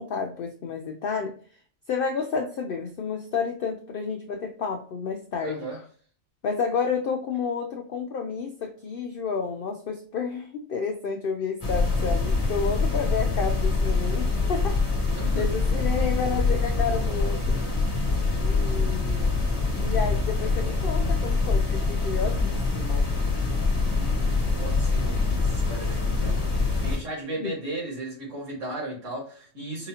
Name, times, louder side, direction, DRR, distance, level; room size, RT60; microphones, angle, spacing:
voice 1, 0.0-1.3 1.9-5.8 6.4-14.8 15.4-17.6 18.4-19.4 19.8-23.1 27.4-27.5, left 5 dB, 70° left, 4 dB, 0.5 m, -30 dB
voice 2, 5.4-5.8 15.1-15.5 18.5-19.0 23.7-24.2 24.5-29.9, right 2 dB, 65° right, -4 dB, 2.2 m, -36 dB
sound 1, 11.6-27.0, left 3 dB, 25° left, 1.2 m, -24 dB
4.7 x 2.8 x 2.4 m, 0.43 s
omnidirectional pair, 1.4 m